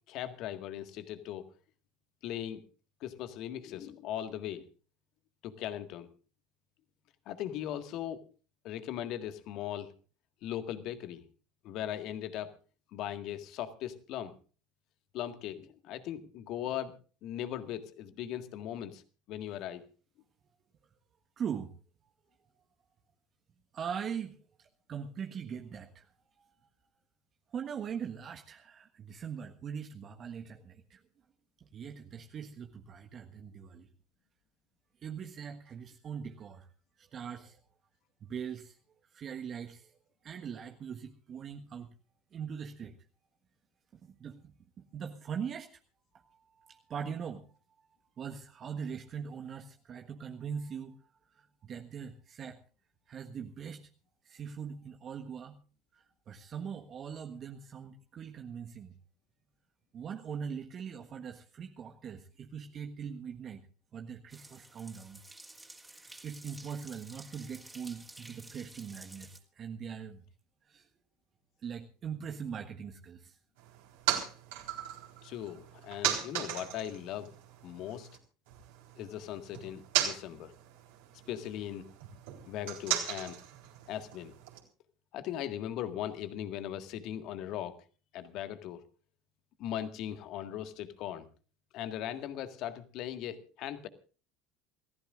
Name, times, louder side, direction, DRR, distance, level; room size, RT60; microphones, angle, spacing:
voice 1, 0.1-1.5 2.2-2.6 3.0-4.7 5.4-6.1 7.3-8.2 8.6-9.9 10.4-11.2 11.6-12.5 12.9-14.3 15.1-16.9 17.2-19.0 19.3-19.9 75.2-77.3 77.6-78.1 79.0-80.5 81.3-81.9 82.5-83.4 83.9-84.3 85.1-87.8 88.1-88.8 89.6-91.3 91.7-93.9, left 11 dB, 55° left, 9 dB, 1.8 m, -39 dB
voice 2, 21.4-21.7 22.0-22.1 23.7-26.1 26.4-26.5 27.5-31.0 31.6-33.9 35.0-36.7 37.0-37.6 38.2-38.8 39.1-40.0 40.2-41.9 42.3-43.0 43.9-44.5 44.9-45.7 46.3-47.5 48.2-51.0 51.3-52.6 53.1-53.9 54.2-55.6 55.9-59.0 59.9-63.6 63.9-65.2 66.2-70.2 70.6-70.9 71.6-73.4, right 7 dB, 40° right, 3 dB, 1.4 m, -41 dB
sound 1, 64.3-69.4, right 2 dB, 10° right, 3.4 m, -52 dB
sound 2, 73.6-78.2 78.5-84.6, right 11 dB, 70° right, 3.9 m, -37 dB
28.0 x 15.0 x 2.5 m, 0.37 s
hypercardioid pair, 70°, 0 cm